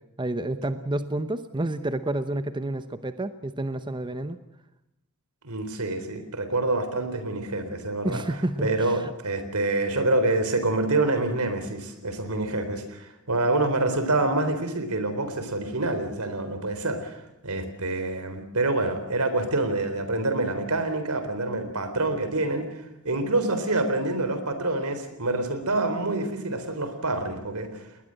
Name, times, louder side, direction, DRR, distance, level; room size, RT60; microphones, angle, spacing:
voice 1, 0.2-4.4 8.0-9.1, right 1 dB, 20° right, 11 dB, 0.9 m, -29 dB
voice 2, 5.4-8.2 8.6-27.8, right 2 dB, 80° right, 10 dB, 4.0 m, -27 dB
21.0 x 20.0 x 7.7 m, 0.89 s
head